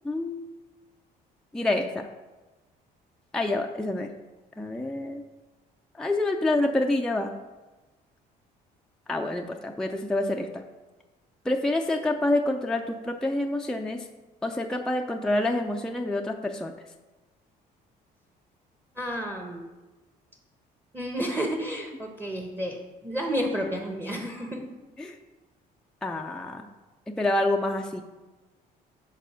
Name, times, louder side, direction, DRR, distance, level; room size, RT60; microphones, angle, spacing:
voice 1, 0.0-0.5 1.5-2.1 3.3-4.1 4.6-5.2 6.0-7.3 9.1-10.6 11.5-14.0 14.4-16.7 25.0-25.2 26.0-26.7 27.2-28.0, left 2 dB, 5° left, 2 dB, 0.4 m, -27 dB
voice 2, 19.0-19.7 20.9-24.6, equal, 15° right, 2 dB, 0.9 m, -31 dB
6.8 x 4.1 x 6.2 m, 1.2 s
cardioid pair, 110°, 17 cm